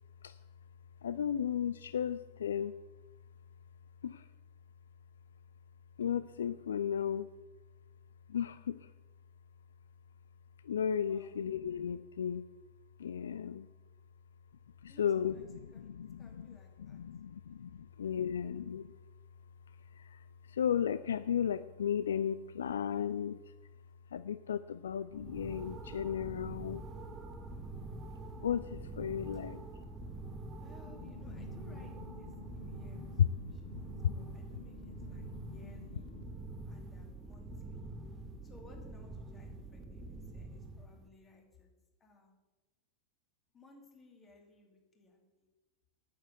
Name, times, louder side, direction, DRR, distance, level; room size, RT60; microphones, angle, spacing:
voice 1, 1.0-2.7 4.0-4.3 6.0-7.3 8.3-8.9 10.6-12.5 13.0-13.7 14.8-18.9 19.9-23.5 24.1-26.8 28.4-29.6 31.4-31.5 32.4-36.0, left 8 dB, 65° left, 14 dB, 0.3 m, -35 dB
voice 2, 11.0-11.4 14.9-15.9 16.2-17.0 30.6-36.2 36.6-41.7 42.0-42.4 43.5-45.5, left 2 dB, 20° left, 2 dB, 2.7 m, -61 dB
sound 1, 25.1-41.1, right 2 dB, 20° right, 1.0 m, -46 dB
9.1 x 8.4 x 7.6 m, 1.1 s
figure-of-eight pair, 90°, 0 cm